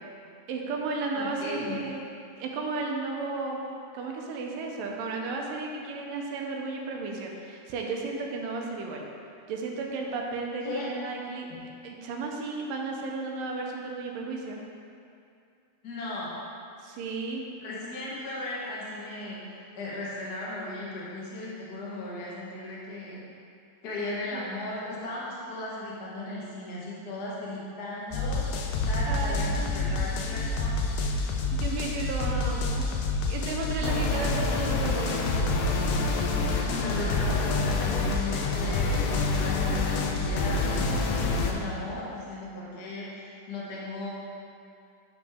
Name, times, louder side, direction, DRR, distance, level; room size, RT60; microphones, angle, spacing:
voice 1, 0.5-2.1 2.4-3.6 3.9-9.0 9.5-14.6 16.8-17.4 24.3-24.5 29.1-30.5 31.5-32.8 33.3-35.3, right 3 dB, 85° right, 0 dB, 2.4 m, -34 dB
voice 2, 1.1-1.8 10.6-10.9 15.8-16.3 17.6-23.2 23.8-28.6 28.8-30.7 32.2-32.6 33.8-34.0 36.4-44.1, left 2 dB, 60° left, -6 dB, 1.0 m, -37 dB
sound 1, 28.1-41.5, left 3 dB, 80° left, 2.3 m, -27 dB
10.0 x 5.1 x 3.5 m, 2.5 s
omnidirectional pair, 3.9 m